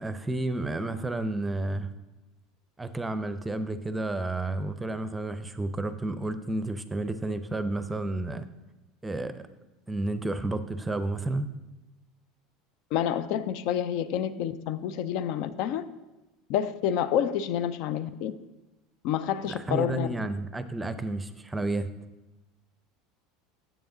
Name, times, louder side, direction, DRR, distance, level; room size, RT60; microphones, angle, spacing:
voice 1, 0.0-1.9 2.8-8.5 9.0-9.5 9.9-11.5 19.5-21.9, right 2 dB, 15° right, 12 dB, 0.6 m, -31 dB
voice 2, 12.9-15.8 16.5-18.3 19.0-20.1, left 9 dB, 60° left, 13 dB, 0.4 m, -28 dB
7.7 x 7.0 x 3.8 m, 1.1 s
hypercardioid pair, 80°, 0 cm